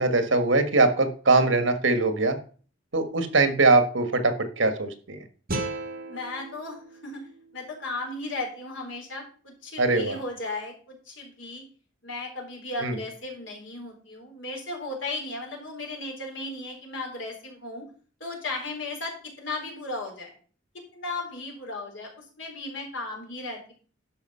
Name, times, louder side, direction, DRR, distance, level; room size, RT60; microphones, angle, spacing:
voice 1, 0.0-2.4 2.9-5.2 9.8-10.2 12.8-13.0, right 3 dB, 70° right, 8 dB, 1.6 m, -22 dB
sound 1, 5.5-8.6, right 2 dB, 50° right, 1.5 m, -37 dB
voice 2, 6.1-7.3 7.5-11.6 12.0-17.8 18.2-20.3 20.9-23.7, left 2 dB, 70° left, 1 dB, 3.8 m, -36 dB
12.0 x 5.3 x 5.6 m, 0.41 s
head